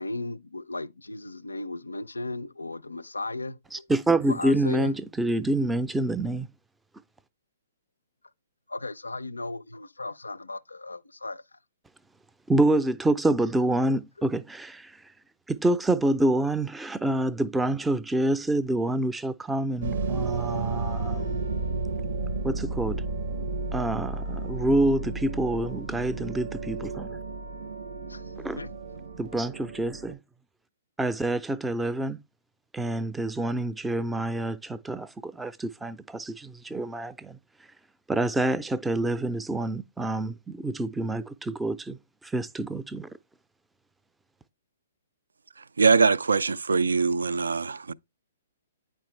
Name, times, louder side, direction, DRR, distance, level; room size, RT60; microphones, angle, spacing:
voice 1, 0.0-3.9 4.3-4.9 8.7-11.6 14.2-14.3 28.1-28.2 28.6-29.1, left 2 dB, 90° left, 0.4 m, -36 dB
voice 2, 3.9-6.5 12.5-14.9 15.5-21.4 22.4-23.0 23.7-27.1 28.4-28.6 29.2-30.2 31.0-32.2 32.7-37.4 38.1-42.0 42.2-43.1, right 1 dB, 5° right, 0.4 m, -27 dB
sound 1, 19.8-30.1, right 3 dB, 65° right, 0.7 m, -32 dB
voice 3, 45.6-47.9, right 4 dB, 80° right, 0.3 m, -23 dB
9.1 x 4.4 x 3.2 m
figure-of-eight pair, 125°, 0 cm